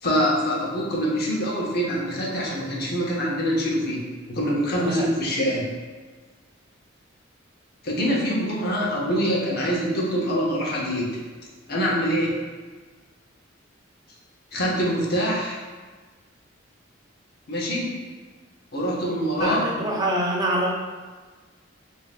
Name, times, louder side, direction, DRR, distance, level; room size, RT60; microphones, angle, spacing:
voice 1, 0.0-5.7 7.8-11.2 11.7-12.4 14.5-15.6 17.5-18.0 18.7-19.7, equal, 50° left, -3 dB, 0.8 m, -24 dB
voice 2, 4.7-5.1 19.4-20.8, right 1 dB, 20° right, -2 dB, 0.4 m, -25 dB
5.1 x 2.7 x 2.4 m, 1.4 s
head